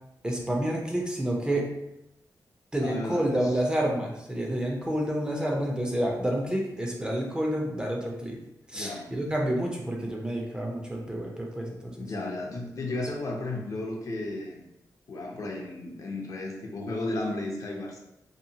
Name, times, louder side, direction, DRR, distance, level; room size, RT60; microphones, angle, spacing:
voice 1, 0.2-1.7 2.7-8.4 8.7-12.1, right 1 dB, 10° right, -1 dB, 0.4 m, -29 dB
voice 2, 2.8-3.6 8.7-9.1 12.0-14.6 15.1-18.0, left 2 dB, 55° left, 0 dB, 0.5 m, -34 dB
2.8 x 2.1 x 2.7 m, 0.86 s
wide cardioid pair, 140°, 7 cm